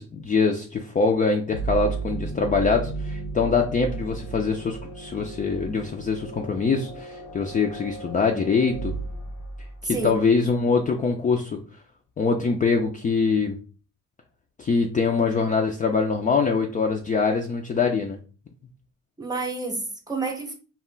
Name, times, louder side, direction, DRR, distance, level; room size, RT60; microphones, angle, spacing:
voice 1, 0.0-8.9 9.8-11.6 12.2-13.6 14.6-18.2, left 4 dB, 25° left, 0.4 m, -23 dB
sound 1, 1.5-10.1, right 4 dB, 80° left, 0.8 m, -34 dB
voice 2, 9.8-10.1 19.2-20.5, right 3 dB, 15° right, 0.8 m, -29 dB
2.2 x 2.1 x 3.7 m
cardioid pair, 90°, 30 cm